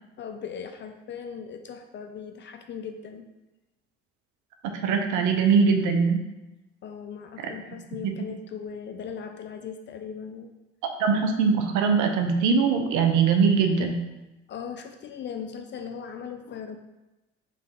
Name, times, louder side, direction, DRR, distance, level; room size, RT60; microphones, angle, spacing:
voice 1, 0.2-3.3 6.8-10.5 14.5-16.8, left 7 dB, 35° left, 6 dB, 0.4 m, -38 dB
voice 2, 4.8-6.2 7.4-7.5 8.0-8.2 11.0-14.0, right 5 dB, 55° right, 5 dB, 0.7 m, -22 dB
3.7 x 3.2 x 3.6 m, 1.0 s
hypercardioid pair, 60°, 35 cm